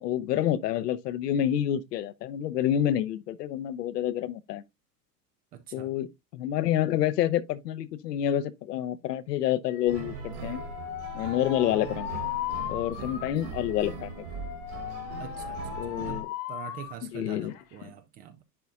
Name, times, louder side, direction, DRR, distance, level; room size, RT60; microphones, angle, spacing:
voice 1, 0.0-4.6 5.7-10.6 11.1-12.2 12.7-14.1 15.8-16.3 17.1-17.5 17.8-17.9, left 11 dB, 75° left, 0.9 m, -28 dB
voice 2, 5.5-6.0 13.0-13.1 15.2-16.2 16.5-18.4, right 10 dB, 20° right, 0.3 m, -44 dB
Alarm, 9.7-16.9 17.3-17.9, left 12 dB, 55° left, 1.5 m, -38 dB
sound 1, 9.9-16.2, right 4 dB, 45° right, 1.8 m, -40 dB
10.5 x 4.1 x 2.3 m
hypercardioid pair, 110°, 48 cm